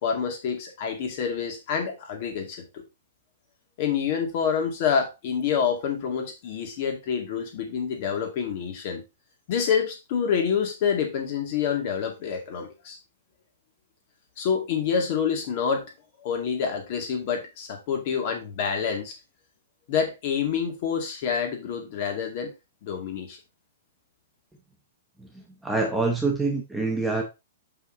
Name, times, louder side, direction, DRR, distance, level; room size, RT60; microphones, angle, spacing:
voice 1, 0.0-2.8 3.8-9.0 9.5-13.0 14.4-15.9 16.2-19.1 19.9-22.5 22.8-23.4, left 7 dB, 40° left, 3 dB, 2.2 m, -27 dB
voice 2, 25.2-27.2, right 3 dB, 5° right, 1 dB, 0.9 m, -26 dB
6.3 x 5.5 x 3.8 m, 0.25 s
hypercardioid pair, 165°, 0 cm